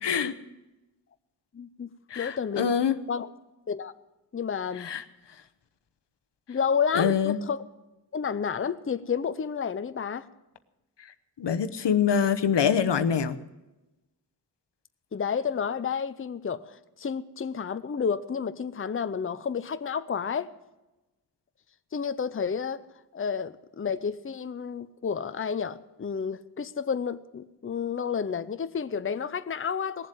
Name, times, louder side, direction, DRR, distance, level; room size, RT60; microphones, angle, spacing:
voice 1, 0.0-0.4 2.1-3.0 4.8-5.0 6.9-7.4 11.4-13.4, left 7 dB, 90° left, 10 dB, 0.9 m, -25 dB
voice 2, 1.5-1.9 2.2-2.7 3.1-3.3 3.7-3.9 4.3-4.9 6.5-7.6 8.1-10.3 15.1-20.5 21.9-22.8 23.1-30.1, left 6 dB, 30° left, 12 dB, 0.6 m, -30 dB
19.0 x 7.6 x 9.0 m, 1.0 s
wide cardioid pair, 105°, 41 cm